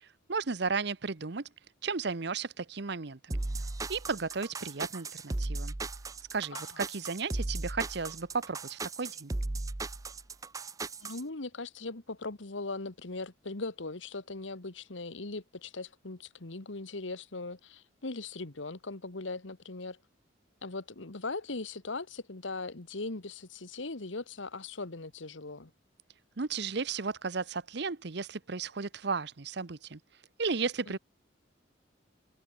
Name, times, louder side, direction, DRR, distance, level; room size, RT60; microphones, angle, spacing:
voice 1, 0.0-1.5 1.8-3.4 3.9-5.7 6.3-9.3 26.4-30.0 30.4-31.0, right 4 dB, 60° right, 0.9 m, -34 dB
sound 1, 3.3-11.2, right 2 dB, 20° right, 0.5 m, -36 dB
voice 2, 6.5-6.8 11.0-20.0 20.6-25.7 30.9-31.0, left 3 dB, 85° left, 1.6 m, -39 dB
head